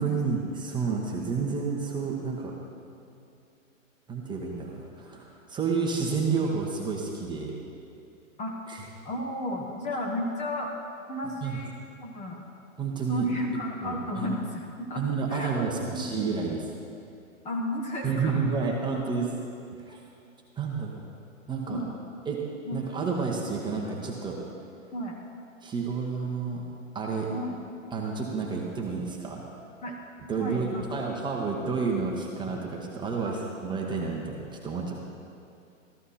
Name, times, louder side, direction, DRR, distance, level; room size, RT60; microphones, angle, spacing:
voice 1, 0.0-2.6 4.1-7.6 8.7-8.8 11.4-11.6 12.8-13.3 13.8-14.3 14.9-16.6 18.0-19.3 19.8-20.0 20.6-21.0 21.5-21.8 22.2-22.4 22.7-24.4 25.6-26.6 26.9-27.3 27.9-29.4 30.3-35.0, right 5 dB, 10° right, -1 dB, 1.2 m, -30 dB
voice 2, 9.0-10.7 11.1-11.7 12.0-12.4 13.1-15.0 15.3-16.3 17.4-18.3 21.7-22.0 22.7-22.8 24.9-25.2 27.3-27.6 29.8-30.0 30.3-31.0 33.2-33.4, left 1 dB, 15° left, 0 dB, 1.3 m, -33 dB
14.0 x 14.0 x 4.3 m, 2.6 s
hypercardioid pair, 130°, 41 cm